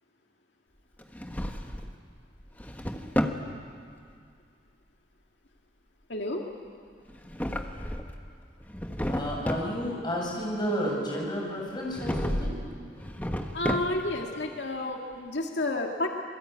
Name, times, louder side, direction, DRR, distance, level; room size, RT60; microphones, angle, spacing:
Drawer open or close, 1.0-2.0 2.4-3.5 7.1-8.2 8.6-9.7 11.9-12.6 12.9-14.2, equal, 10° left, 1.3 m, -32 dB
voice 1, 6.1-6.4 13.5-16.1, left 2 dB, 80° left, 1 dB, 2.1 m, -30 dB
voice 2, 9.1-12.6, equal, 25° left, -2 dB, 7.5 m, -31 dB
27.5 x 21.0 x 9.4 m, 2.2 s
head